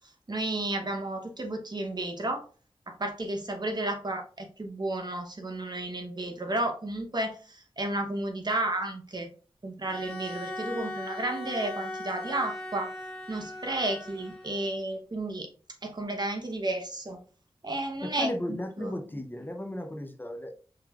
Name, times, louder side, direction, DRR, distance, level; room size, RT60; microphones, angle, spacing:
voice 1, 0.3-2.4 2.9-9.3 9.6-12.9 13.3-15.5 15.8-17.2 17.6-18.9, right 1 dB, 45° right, 0.9 m, -32 dB
Bowed string instrument, 9.9-14.9, left 1 dB, ahead, 1.6 m, -39 dB
voice 2, 18.0-20.5, left 1 dB, 20° left, 0.7 m, -35 dB
5.8 x 3.1 x 2.4 m
wide cardioid pair, 65°, 10 cm